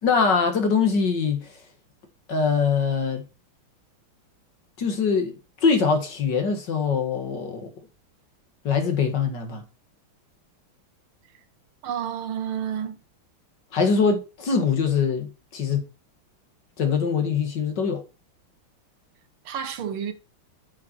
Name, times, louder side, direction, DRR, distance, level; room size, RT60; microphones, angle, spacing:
voice 1, 0.0-1.5 2.3-3.2 4.8-7.7 8.6-9.6 13.7-15.9 16.8-18.0, left 5 dB, 55° left, 2.4 m, -23 dB
voice 2, 11.8-13.0 19.5-20.1, right 8 dB, 90° right, 2.1 m, -30 dB
8.4 x 7.0 x 4.5 m
omnidirectional pair, 2.3 m